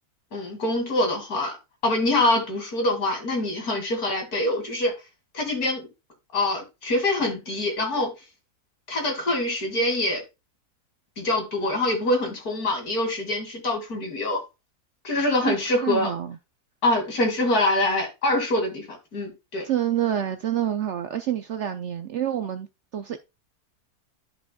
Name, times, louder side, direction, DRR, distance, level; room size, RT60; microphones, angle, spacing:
voice 1, 0.3-1.5 1.8-4.9 5.3-5.9 6.3-8.1 8.9-10.2 11.2-14.4 15.0-16.1 16.8-19.6, left 1 dB, 70° left, 2.8 m, -25 dB
voice 2, 15.8-16.4 19.6-22.7 22.9-23.2, right 11 dB, 65° right, 0.7 m, -27 dB
12.5 x 5.2 x 2.2 m
omnidirectional pair, 1.7 m